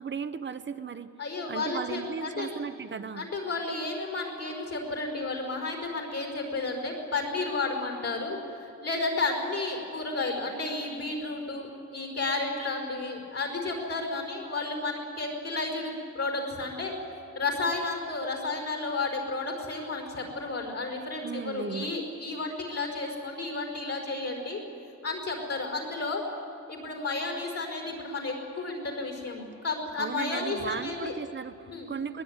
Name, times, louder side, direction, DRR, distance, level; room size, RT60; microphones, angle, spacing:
voice 1, 0.0-1.1 1.5-3.3 21.2-21.9 30.0-32.2, right 6 dB, 40° right, 10 dB, 0.8 m, -36 dB
voice 2, 1.2-2.5 3.1-16.9 17.3-24.6 25.0-26.2 26.7-31.1 31.7-31.9, left 3 dB, 60° left, 3 dB, 5.1 m, -32 dB
22.0 x 20.0 x 9.5 m, 2.8 s
wide cardioid pair, 165°, 29 cm